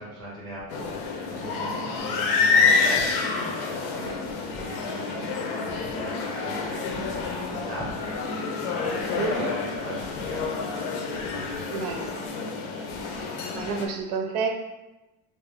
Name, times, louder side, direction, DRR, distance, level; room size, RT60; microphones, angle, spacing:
voice 1, 0.0-12.0, equal, 10° left, -8 dB, 0.6 m, -39 dB
sound 1, 0.7-13.9, left 4 dB, 85° left, 0.6 m, -28 dB
voice 2, 9.2-9.5 11.7-12.0 13.5-14.5, right 5 dB, 70° right, 3 dB, 0.6 m, -29 dB
2.6 x 2.1 x 3.3 m, 1.0 s
cardioid pair, 170°, 50 cm